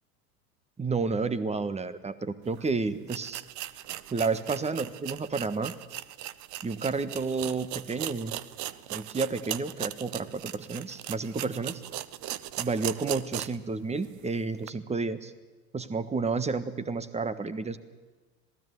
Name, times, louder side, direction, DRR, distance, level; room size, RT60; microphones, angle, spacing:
voice 1, 0.8-3.4 4.1-5.7 6.6-8.4 8.9-11.8 12.6-15.3 15.7-17.8, right 4 dB, 15° right, 13 dB, 1.5 m, -31 dB
sound 1, 2.5-2.6 3.1-13.7 14.0-14.1 14.6-14.7, right 14 dB, 35° right, 0.9 m, -38 dB
26.5 x 18.5 x 8.2 m, 1.3 s
figure-of-eight pair, 80°, 49 cm